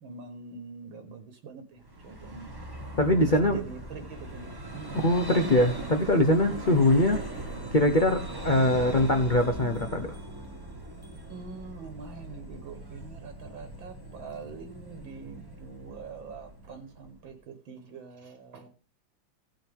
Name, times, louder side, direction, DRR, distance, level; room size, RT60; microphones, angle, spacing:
voice 1, 0.0-2.5 3.2-5.0 6.5-6.8 11.3-18.7, right 5 dB, 65° right, 1.9 m, -44 dB
Vehicle, 1.8-17.3, right 2 dB, 10° right, 1.3 m, -40 dB
voice 2, 3.0-3.6 4.9-7.2 7.7-10.1, left 1 dB, 75° left, 0.4 m, -23 dB
16.0 x 7.7 x 3.5 m
omnidirectional pair, 2.4 m